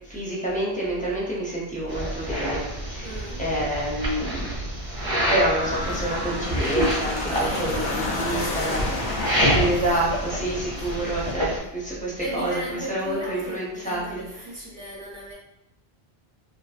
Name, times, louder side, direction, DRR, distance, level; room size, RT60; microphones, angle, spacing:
voice 1, 0.1-2.6 2.9-3.1 3.4-4.5 5.3-8.9 9.4-12.5 12.9-14.2, right 1 dB, 10° left, -6 dB, 0.5 m, -28 dB
sound 1, 1.7-13.6, right 2 dB, 85° right, 0.9 m, -42 dB
sound 2, 1.9-11.6, equal, 30° right, 0.6 m, -28 dB
voice 2, 3.0-3.5 7.2-10.0 10.7-11.0 11.5-11.8 12.1-15.3, equal, 55° right, -6 dB, 0.9 m, -37 dB
sound 3, 5.6-11.3, left 2 dB, 75° left, 0.8 m, -32 dB
2.8 x 2.5 x 2.4 m, 0.85 s
omnidirectional pair, 1.1 m